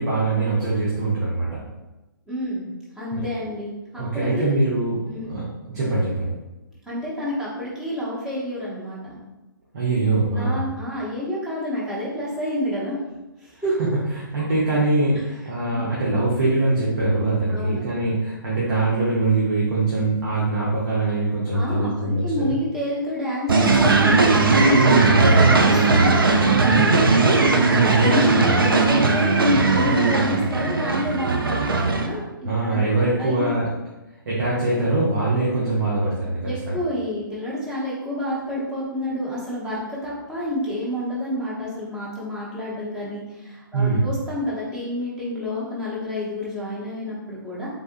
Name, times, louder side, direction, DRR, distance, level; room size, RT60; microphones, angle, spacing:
voice 1, 0.0-1.6 3.1-3.2 3.9-5.4 5.7-6.3 9.7-10.6 14.3-22.5 24.8-25.6 26.8-27.0 27.7-28.0 32.4-33.6 34.2-36.8 43.7-44.0, right 2 dB, 55° right, -7 dB, 0.9 m, -23 dB
voice 2, 2.3-2.7 3.0-4.5 5.1-5.4 6.8-9.2 10.3-13.0 13.4-13.8 15.6-15.8 17.5-17.9 21.5-24.8 25.2-27.1 27.7-32.3 32.7-32.8 33.2-33.5 36.4-47.7, left 1 dB, 5° right, -7 dB, 0.7 m, -29 dB
sound 1, 23.5-32.1, right 3 dB, 75° right, 0.4 m, -18 dB
3.7 x 2.4 x 2.5 m, 1.0 s
figure-of-eight pair, 130°, 12 cm